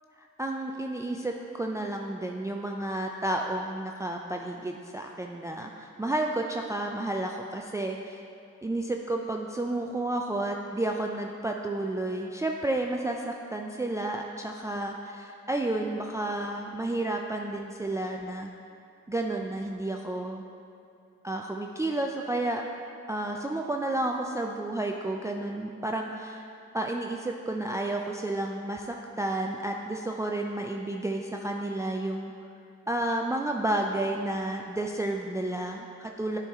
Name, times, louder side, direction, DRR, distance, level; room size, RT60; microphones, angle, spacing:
voice 1, 0.4-8.2 8.6-18.5 19.1-20.4 21.2-22.7 23.1-26.4 26.7-32.3 32.9-36.4, right 1 dB, 10° right, 2 dB, 0.4 m, -31 dB
8.4 x 4.6 x 3.6 m, 2.6 s
cardioid pair, 55°, 31 cm